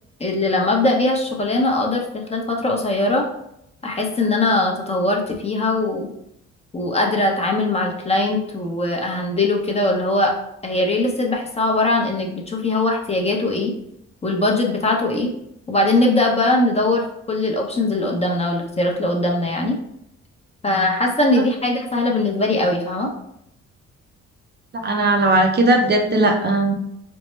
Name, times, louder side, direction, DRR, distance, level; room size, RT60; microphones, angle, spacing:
voice 1, 0.2-3.2 3.8-6.1 6.7-10.3 10.6-13.7 14.2-15.3 15.7-19.8 20.6-23.1, left 2 dB, 20° left, 0 dB, 0.7 m, -21 dB
voice 2, 24.7-26.7, right 2 dB, 35° right, 2 dB, 0.6 m, -17 dB
4.4 x 2.1 x 3.1 m, 0.77 s
cardioid pair, 90°, 30 cm